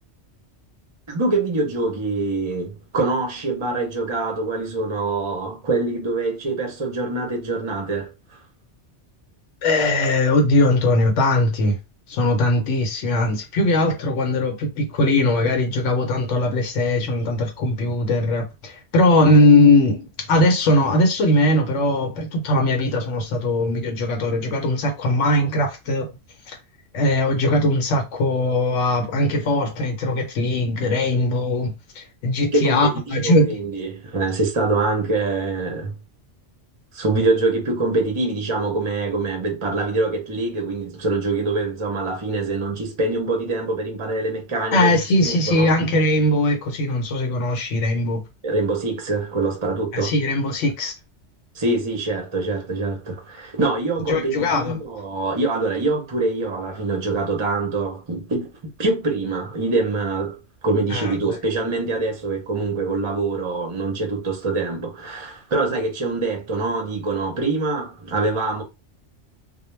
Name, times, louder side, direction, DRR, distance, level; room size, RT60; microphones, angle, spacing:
voice 1, 1.1-8.4 32.5-35.9 36.9-45.7 48.4-50.1 51.5-68.6, right 3 dB, 35° right, 0.5 m, -24 dB
voice 2, 9.6-11.8 12.1-26.1 26.5-26.6 26.9-33.5 44.7-48.2 49.9-50.9 54.1-54.7 60.9-61.1, left 1 dB, 90° left, 1.0 m, -20 dB
2.2 x 2.1 x 3.1 m
omnidirectional pair, 1.2 m